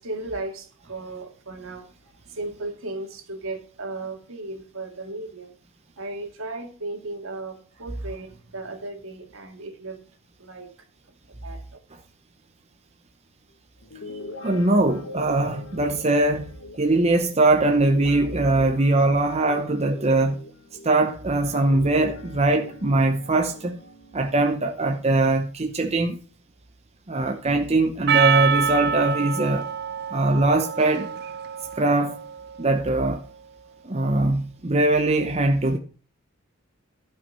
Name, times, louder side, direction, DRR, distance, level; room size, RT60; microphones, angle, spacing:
voice 1, 0.0-1.9 2.3-5.5 6.0-10.0 10.4-10.7 11.4-11.8 14.1-14.2 28.0-28.1, right 2 dB, 70° right, 2.2 m, -35 dB
Guitar, 13.8-21.0 21.5-25.2, left 1 dB, 70° left, 1.4 m, -42 dB
voice 2, 14.4-16.5 16.8-20.4 20.8-23.8 24.1-26.2 27.1-29.6 30.1-31.1 31.7-32.2 32.6-33.2 33.8-35.8, right 2 dB, 30° right, 0.8 m, -21 dB
Percussion, 28.1-32.7, right 7 dB, 50° right, 0.5 m, -26 dB
12.0 x 5.8 x 5.4 m
head